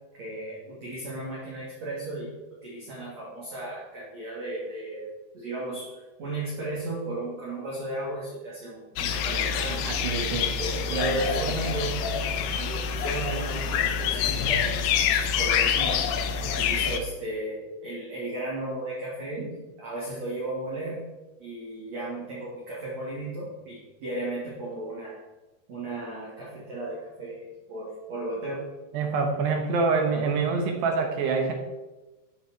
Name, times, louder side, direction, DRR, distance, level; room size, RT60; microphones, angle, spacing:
voice 1, 0.2-2.3 2.6-5.1 5.3-10.0 10.6-21.0 21.4-25.2 25.7-28.6, right 1 dB, 40° right, -7 dB, 3.2 m, -35 dB
sound 1, 9.0-17.0, left 7 dB, 80° left, 2.4 m, -26 dB
voice 2, 9.8-10.5 10.9-11.2 28.9-31.5, right 4 dB, 70° right, 3 dB, 2.9 m, -26 dB
13.0 x 7.6 x 4.6 m, 1.1 s
omnidirectional pair, 5.8 m